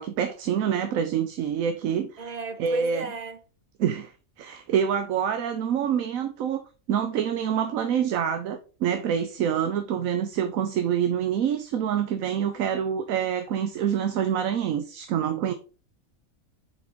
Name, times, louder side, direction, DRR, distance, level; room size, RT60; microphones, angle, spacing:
voice 1, 0.0-2.3 2.6-3.1 3.8-4.1 4.4-6.6 6.9-15.5, right 8 dB, 75° right, 1.1 m, -26 dB
voice 2, 2.2-3.4, right 3 dB, 50° right, 0.5 m, -35 dB
7.3 x 4.3 x 3.6 m
omnidirectional pair, 1.5 m